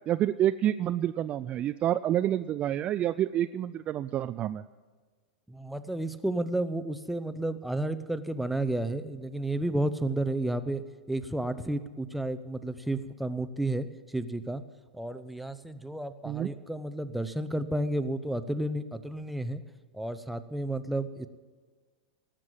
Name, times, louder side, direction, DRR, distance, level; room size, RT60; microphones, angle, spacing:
voice 1, 0.1-4.6 16.3-16.5, right 11 dB, 30° right, 12 dB, 0.4 m, -28 dB
voice 2, 5.5-10.8 11.1-14.6 14.9-19.6 19.9-21.3, right 1 dB, ahead, 10 dB, 0.8 m, -32 dB
18.5 x 7.6 x 8.8 m, 1.4 s
figure-of-eight pair, 95°, 4 cm